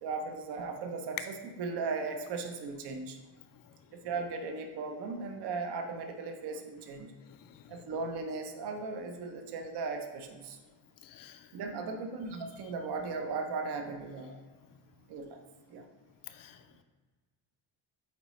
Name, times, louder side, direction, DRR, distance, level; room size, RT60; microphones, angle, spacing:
voice 1, 0.0-3.2 3.9-7.1 7.7-10.6 11.5-14.4 15.1-15.4 15.7-15.8, right 4 dB, 55° right, 5 dB, 0.8 m, -37 dB
voice 2, 11.0-11.5 16.3-16.6, left 11 dB, 45° left, 8 dB, 0.5 m, -51 dB
8.6 x 4.1 x 3.1 m, 1.4 s
cardioid pair, 135°, 47 cm